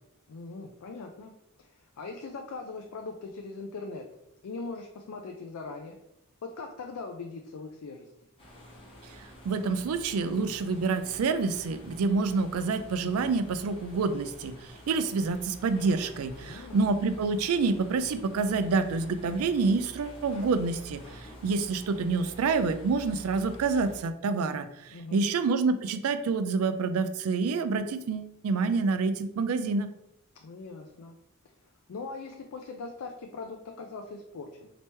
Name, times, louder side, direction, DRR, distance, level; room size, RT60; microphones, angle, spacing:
voice 1, 0.3-1.3 1.6-4.0 4.4-6.0 6.6-8.1 16.4-16.9 24.9-25.3 30.4-31.2 31.9-34.7, left 3 dB, 85° left, 3 dB, 0.4 m, -40 dB
sound 1, 8.4-24.0, equal, 25° left, 0.9 m, -48 dB
voice 2, 9.4-29.9, right 4 dB, 80° right, 11 dB, 0.4 m, -28 dB
3.0 x 2.9 x 3.2 m, 0.86 s
head